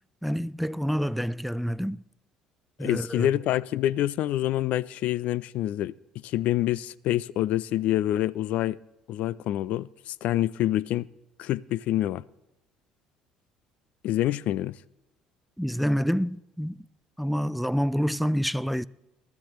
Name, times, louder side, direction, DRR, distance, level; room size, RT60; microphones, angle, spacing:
voice 1, 0.2-2.0 2.8-3.3 15.6-16.8 17.2-18.8, equal, ahead, 0.4 m, -27 dB
voice 2, 2.8-5.9 6.2-8.8 9.1-11.1 11.4-12.2 14.0-14.8, left 13 dB, 65° left, 0.4 m, -26 dB
22.5 x 12.0 x 3.1 m
hypercardioid pair, 70°, 3 cm